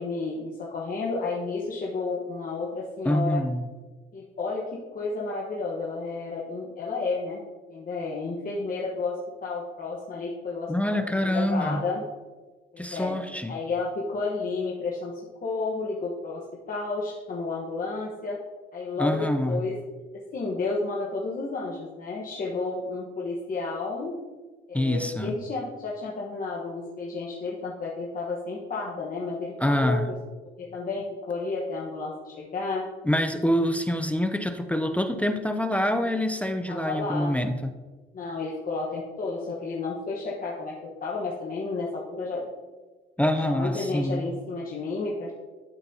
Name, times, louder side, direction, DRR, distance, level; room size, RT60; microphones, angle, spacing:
voice 1, 0.0-3.4 4.1-4.6 4.9-7.4 7.7-12.0 12.7-13.1 13.5-18.4 18.7-19.8 20.3-24.2 24.7-30.0 30.6-32.8 36.7-37.3 38.1-42.4 43.4-45.3, left 3 dB, 45° left, -4 dB, 1.1 m, -31 dB
voice 2, 3.0-3.7 10.7-11.9 12.8-13.5 19.0-19.7 24.7-25.4 29.6-30.1 33.0-37.7 43.2-44.3, left 1 dB, 5° left, 7 dB, 0.5 m, -26 dB
12.0 x 4.1 x 2.7 m, 1.3 s
cardioid pair, 90°, 20 cm